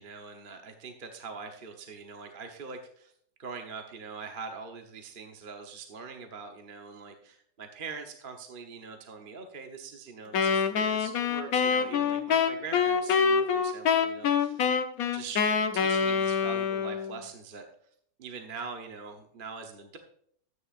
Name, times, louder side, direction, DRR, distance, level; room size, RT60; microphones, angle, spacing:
voice 1, 0.0-3.1 3.4-14.6 15.1-15.4 15.7-17.7 18.2-20.0, right 5 dB, 40° right, 4 dB, 1.0 m, -43 dB
Wind instrument woodwind instrument, 10.3-17.2, left 6 dB, 70° left, 1.2 m, -26 dB
13.0 x 9.5 x 2.5 m, 0.65 s
omnidirectional pair, 1.7 m